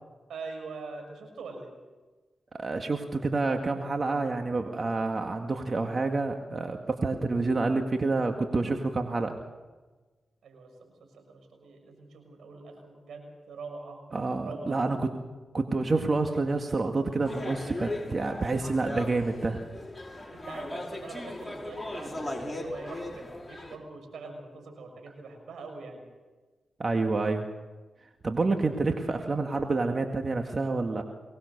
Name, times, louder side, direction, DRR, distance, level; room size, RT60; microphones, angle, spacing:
voice 1, 0.3-1.7 10.4-14.0 14.4-14.8 20.3-26.1, right 3 dB, 80° right, 3 dB, 6.3 m, -43 dB
voice 2, 2.5-9.4 14.1-15.1 15.5-19.6 26.8-27.5 28.2-31.0, right 3 dB, 45° right, 4 dB, 2.0 m, -28 dB
sound 1, 17.2-23.8, left 1 dB, 15° left, 5.5 m, -38 dB
23.5 x 19.5 x 6.8 m, 1.3 s
supercardioid pair, 45°, 0 cm